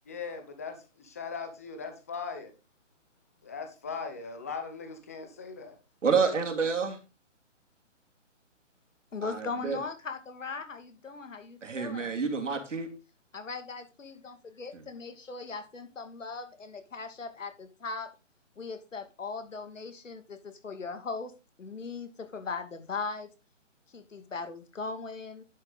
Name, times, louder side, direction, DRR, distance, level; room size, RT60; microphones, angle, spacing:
voice 1, 0.1-2.5 3.4-5.7, left 5 dB, 10° left, 7 dB, 0.8 m, -39 dB
voice 2, 6.0-7.0 9.2-9.8 11.6-12.9 14.7-14.8, right 5 dB, 70° right, 4 dB, 3.0 m, -28 dB
voice 3, 9.1-12.1 13.3-18.1 18.6-21.3 21.6-23.3 23.9-25.4, left 4 dB, 80° left, 8 dB, 2.6 m, -39 dB
10.5 x 6.7 x 4.1 m, 0.30 s
hypercardioid pair, 170°, 38 cm